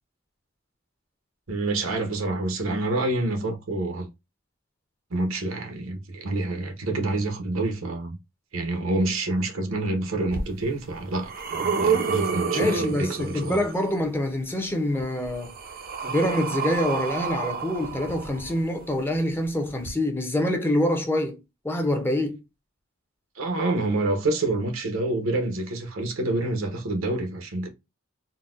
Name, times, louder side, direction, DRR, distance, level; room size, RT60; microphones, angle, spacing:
voice 1, 1.5-4.1 5.1-8.2 8.5-13.6 23.4-27.7, right 2 dB, 80° right, 0.8 m, -27 dB
sound 1, 10.3-10.4 11.0-13.7 14.9-18.8 19.8-19.9, right 6 dB, 45° right, 0.5 m, -29 dB
voice 2, 12.5-15.5 16.1-21.4 21.6-22.4, left 1 dB, 10° left, 0.5 m, -26 dB
3.9 x 2.1 x 2.4 m
head